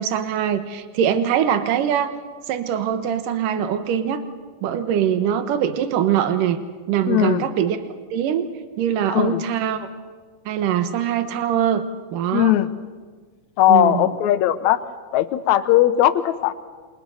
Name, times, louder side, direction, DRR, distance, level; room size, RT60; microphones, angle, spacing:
voice 1, 0.0-2.1 2.5-4.2 4.6-6.6 6.9-8.4 8.8-9.9 10.5-11.8 12.1-12.5 13.7-14.1, right 9 dB, 70° right, 9 dB, 2.8 m, -22 dB
voice 2, 7.1-7.5 9.1-9.4 12.3-12.7 13.6-14.8 15.1-16.5, left 13 dB, 70° left, 11 dB, 2.0 m, -18 dB
28.5 x 23.5 x 6.5 m, 1.5 s
omnidirectional pair, 4.0 m